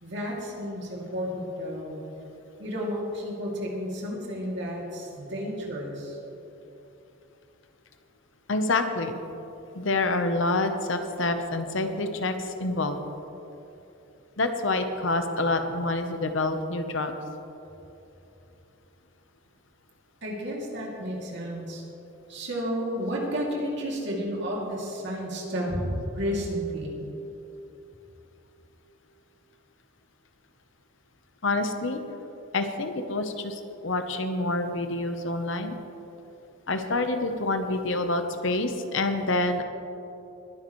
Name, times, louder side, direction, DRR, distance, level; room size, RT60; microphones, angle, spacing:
voice 1, 0.0-2.0 2.6-6.2 20.2-21.8 22.3-27.0, equal, 55° right, -3 dB, 2.6 m, -32 dB
voice 2, 8.5-9.2 9.7-13.0 14.4-17.1 31.4-32.0 32.5-35.8 36.7-39.6, left 2 dB, 65° left, 7 dB, 0.9 m, -27 dB
20.5 x 11.0 x 3.2 m, 3.0 s
head